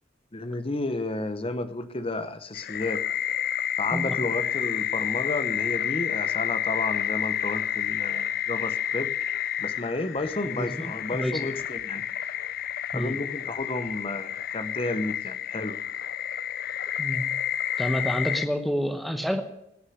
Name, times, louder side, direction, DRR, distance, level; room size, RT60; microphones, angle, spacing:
voice 1, 0.3-3.0 3.8-9.1 9.6-12.0 12.9-15.8, left 2 dB, 30° left, 11 dB, 0.8 m, -32 dB
sound 1, 2.5-18.5, left 10 dB, 55° left, 0.5 m, -30 dB
voice 2, 10.5-11.4 12.9-13.2 17.0-17.2 17.8-19.4, equal, ahead, 7 dB, 1.0 m, -28 dB
19.0 x 6.7 x 9.4 m, 0.84 s
head